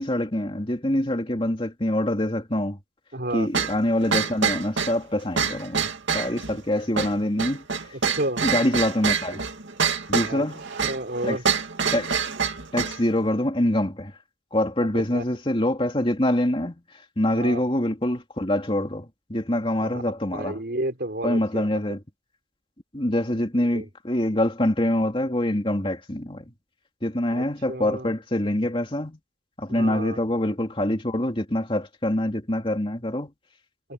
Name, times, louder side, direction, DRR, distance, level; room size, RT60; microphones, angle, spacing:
voice 1, 0.0-2.8 3.3-8.0 8.4-9.4 10.1-10.6 11.2-11.4 11.9-12.2 12.7-14.1 14.5-20.6 21.2-22.0 22.9-26.5 27.0-29.2 29.6-33.3, left 1 dB, 30° left, 2.8 m, -25 dB
voice 2, 3.1-3.5 7.9-8.5 10.3-10.4 10.8-11.4 15.1-15.2 17.4-17.6 19.8-20.0 20.3-21.6 23.7-23.9 27.3-28.1 29.7-30.2, right 1 dB, 60° right, 4.1 m, -31 dB
sound 1, 3.5-13.0, right 6 dB, 90° right, 2.3 m, -26 dB
head